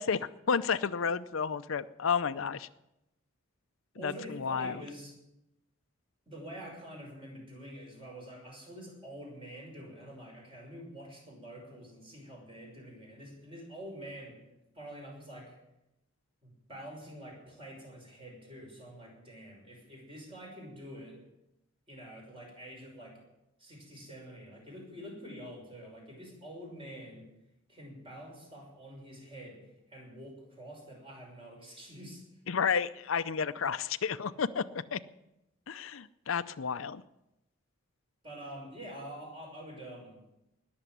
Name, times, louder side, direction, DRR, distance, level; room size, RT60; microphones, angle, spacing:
voice 1, 0.0-2.7 4.0-4.8 32.5-34.6 34.9-35.0 35.7-37.0, left 6 dB, 80° left, 13 dB, 0.6 m, -31 dB
voice 2, 4.0-5.1 6.3-14.4 14.7-15.6 16.4-21.2 21.9-23.2 23.6-27.3 27.7-32.2 38.2-40.2, equal, 25° right, -1 dB, 6.0 m, -47 dB
20.0 x 7.1 x 9.8 m, 0.90 s
head